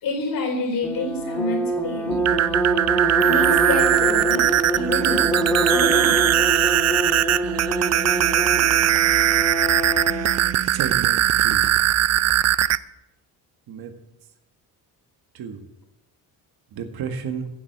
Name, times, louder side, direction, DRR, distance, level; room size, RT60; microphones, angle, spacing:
voice 1, 0.0-2.2 3.2-6.5 8.5-8.6, left 2 dB, 65° left, 3 dB, 4.1 m, -29 dB
sound 1, 0.8-10.4, right 1 dB, 5° left, 1.8 m, -25 dB
sound 2, 2.1-12.8, right 12 dB, 45° right, 0.5 m, -20 dB
voice 2, 10.6-11.7 13.7-14.0 15.3-15.6 16.7-17.5, right 6 dB, 75° right, 6 dB, 1.8 m, -32 dB
15.0 x 7.7 x 8.0 m, 0.92 s
cardioid pair, 125°, 37 cm